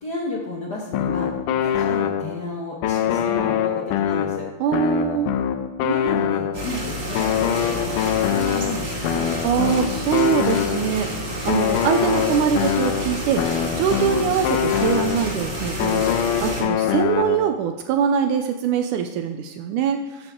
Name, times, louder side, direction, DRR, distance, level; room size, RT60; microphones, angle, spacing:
voice 1, 0.0-1.3 1.6-4.5 5.8-9.3, left 2 dB, 45° left, -2 dB, 1.3 m, -32 dB
sound 1, 0.9-2.5 2.8-6.8 7.2-11.0 11.5-15.4 15.8-17.6, left 9 dB, 90° left, 2.2 m, -24 dB
voice 2, 4.6-5.4 9.4-13.5 13.7-20.3, right 8 dB, 80° right, 6 dB, 2.1 m, -23 dB
sound 2, 6.5-16.6, equal, 20° right, 1.6 m, -29 dB
13.5 x 8.9 x 3.7 m, 1.1 s
omnidirectional pair, 3.7 m